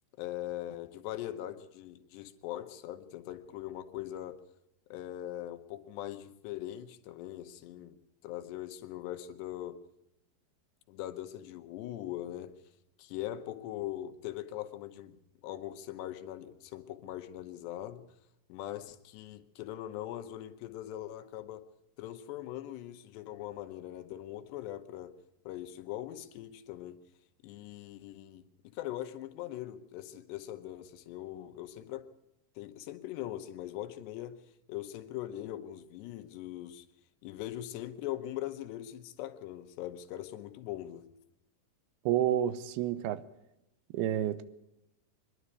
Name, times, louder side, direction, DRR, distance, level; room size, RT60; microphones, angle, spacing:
voice 1, 0.2-4.4 4.9-9.8 10.9-12.6 13.0-18.1 18.5-21.7 22.0-25.1 25.4-27.0 27.4-32.1 32.6-34.4 34.7-36.9 37.2-41.1, left 13 dB, 85° left, 3.2 m, -41 dB
voice 2, 42.1-43.2 43.9-44.4, right 11 dB, 75° right, 2.7 m, -29 dB
24.0 x 11.5 x 9.7 m
omnidirectional pair, 4.8 m